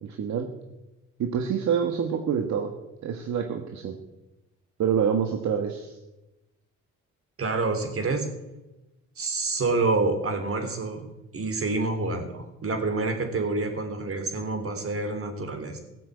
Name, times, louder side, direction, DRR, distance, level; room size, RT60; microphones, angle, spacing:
voice 1, 0.0-0.5 1.2-2.7 3.0-3.9 4.8-6.0, right 7 dB, 65° right, 4 dB, 1.5 m, -26 dB
voice 2, 7.4-8.3 9.2-11.1 11.3-15.8, right 3 dB, 45° right, 6 dB, 3.7 m, -27 dB
17.0 x 7.7 x 8.4 m, 0.99 s
cardioid pair, 90°, 30 cm